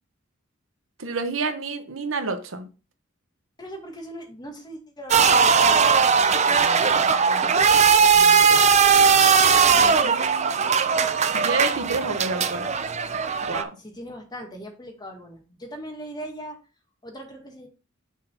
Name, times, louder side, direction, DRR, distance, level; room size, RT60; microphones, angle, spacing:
voice 1, 1.0-2.7 9.8-10.8 11.4-12.7 13.4-13.7, right 3 dB, 80° right, 8 dB, 1.0 m, -29 dB
voice 2, 3.6-8.7 13.8-16.6 17.0-17.7, equal, 20° left, 2 dB, 1.7 m, -39 dB
sound 1, 5.1-13.6, right 6 dB, 35° right, 0.5 m, -19 dB
6.3 x 4.1 x 5.6 m, 0.32 s
head